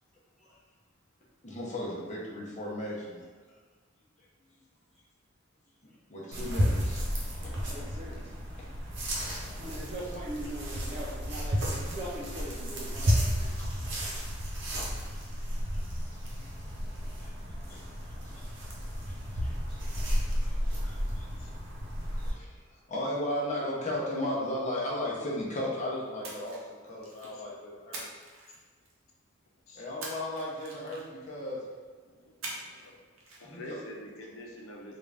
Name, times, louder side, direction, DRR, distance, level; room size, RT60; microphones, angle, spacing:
voice 1, 1.4-3.2 6.1-7.0 7.4-7.5 13.6-13.7 15.7-15.8 16.4-16.5 17.2-17.3 17.7-17.8 18.2-18.4 19.4-19.9 20.4-20.6 20.8-21.3 22.1-22.6 22.9-26.6 26.8-28.0 29.7-31.6 33.4-33.8, left 1 dB, 35° left, -4 dB, 0.8 m, -35 dB
sound 1, 6.3-22.3, equal, 60° right, 0.9 m, -32 dB
voice 2, 7.5-8.3 9.6-13.6, right 1 dB, 30° right, -5 dB, 0.4 m, -41 dB
Splash splatter, 26.2-27.4 27.9-29.1 30.0-31.3 32.4-32.9 33.2-33.4, right 2 dB, 90° right, 0.8 m, -43 dB
voice 3, 32.1-33.0 33.4-35.0, left 1 dB, 90° left, -1 dB, 0.7 m, -46 dB
3.7 x 2.5 x 3.3 m, 1.4 s
head